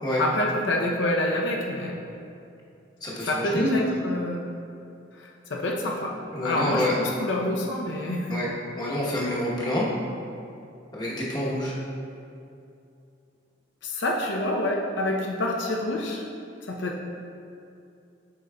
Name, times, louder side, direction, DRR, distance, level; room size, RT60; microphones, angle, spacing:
voice 1, 0.2-2.0 3.2-4.4 5.1-8.3 13.8-16.2 16.7-17.0, left 1 dB, 75° left, -1 dB, 0.6 m, -27 dB
voice 2, 3.0-3.8 6.3-6.9 8.3-8.5 8.8-9.8 10.9-11.7, left 1 dB, 20° left, -6 dB, 1.0 m, -27 dB
8.3 x 5.3 x 2.2 m, 2.6 s
head